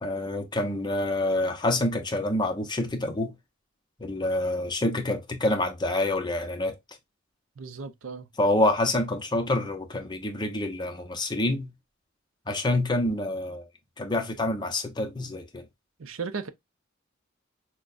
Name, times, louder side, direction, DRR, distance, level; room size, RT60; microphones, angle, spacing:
voice 1, 0.0-3.3 4.0-6.8 8.4-11.7 12.5-13.7 14.0-15.6, left 1 dB, 20° left, 0.8 m, -27 dB
voice 2, 7.6-8.3 16.0-16.5, right 5 dB, 80° right, 0.6 m, -35 dB
6.0 x 2.2 x 2.4 m
head